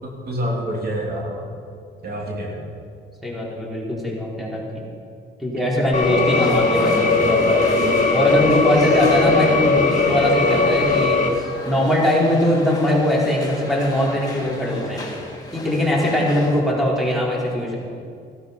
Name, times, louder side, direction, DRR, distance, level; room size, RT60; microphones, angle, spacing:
voice 1, 0.0-1.5 2.0-2.6, equal, 50° right, -2 dB, 3.1 m, -27 dB
voice 2, 3.2-4.8 5.4-11.2 11.7-15.0 15.5-17.8, left 1 dB, ahead, -4 dB, 4.7 m, -21 dB
sound 1, 5.9-11.3, left 3 dB, 40° left, 2.1 m, -19 dB
sound 2, 6.3-16.6, left 2 dB, 20° left, 3.3 m, -34 dB
17.5 x 12.0 x 5.5 m, 2.3 s
cardioid pair, 90°, 20 cm